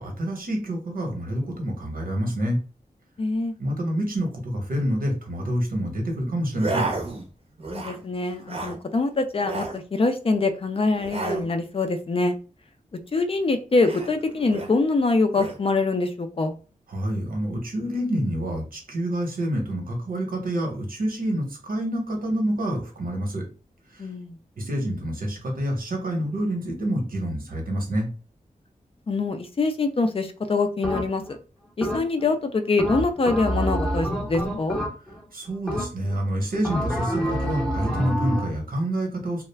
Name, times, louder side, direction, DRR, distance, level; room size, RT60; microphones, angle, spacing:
voice 1, 0.0-2.6 3.6-6.9 16.9-23.4 24.6-28.1 35.3-39.4, right 1 dB, 85° right, 1 dB, 0.9 m, -27 dB
voice 2, 3.2-3.5 7.7-12.4 13.1-16.5 24.0-24.4 29.1-31.2 31.8-34.8, left 3 dB, 40° left, 8 dB, 0.4 m, -24 dB
sound 1, 6.5-7.3 7.6-8.0 8.3-8.8 9.4-9.8 11.0-11.5 13.8-14.7 15.3-15.6, right 3 dB, 45° right, 0.6 m, -31 dB
sound 2, 30.8-31.4 31.8-32.3 32.8-35.3 35.7-36.2 36.6-38.6, equal, 5° left, 0.7 m, -27 dB
2.3 x 2.1 x 3.2 m, 0.35 s
wide cardioid pair, 110°, 15 cm